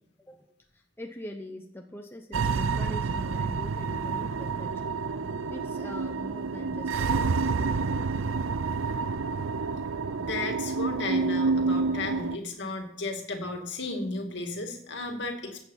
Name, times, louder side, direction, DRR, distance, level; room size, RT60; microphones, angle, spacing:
voice 1, 0.7-5.0 5.5-7.4, left 1 dB, 10° left, 3 dB, 0.9 m, -43 dB
sound 1, 2.3-12.4, right 4 dB, 80° right, 0.5 m, -29 dB
voice 2, 10.2-15.6, left 2 dB, 60° left, 4 dB, 2.4 m, -34 dB
15.0 x 8.4 x 5.7 m, 0.77 s
head